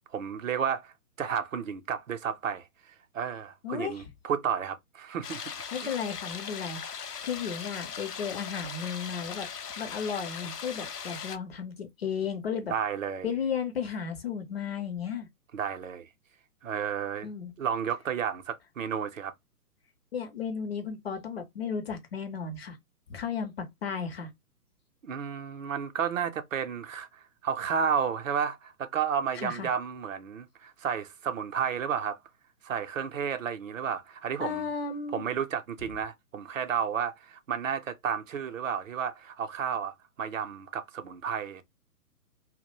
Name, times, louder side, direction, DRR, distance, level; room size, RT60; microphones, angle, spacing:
voice 1, 0.1-5.4 5.7-5.9 12.7-13.3 15.5-16.1 16.6-17.3 17.6-19.3 25.0-32.2 32.6-34.7 35.1-41.6, right 7 dB, 60° right, 0.5 m, -32 dB
voice 2, 3.6-4.0 5.7-6.8 7.2-9.5 9.8-12.7 13.2-15.3 17.2-17.5 20.1-22.8 23.1-24.3 29.3-29.7 34.4-35.4, left 6 dB, 45° left, 0.5 m, -34 dB
sound 1, 5.2-11.4, left 7 dB, 90° left, 0.6 m, -39 dB
2.2 x 2.1 x 2.8 m
figure-of-eight pair, 130°, 46 cm